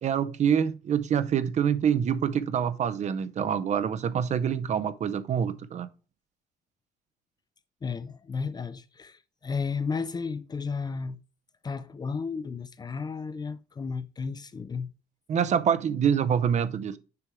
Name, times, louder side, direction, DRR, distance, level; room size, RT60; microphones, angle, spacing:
voice 1, 0.0-5.9 15.3-17.0, right 8 dB, 45° right, 0.6 m, -26 dB
voice 2, 7.8-11.2 11.6-14.9, left 5 dB, 25° left, 0.4 m, -33 dB
6.8 x 3.5 x 4.6 m
cardioid pair, 110°, 17 cm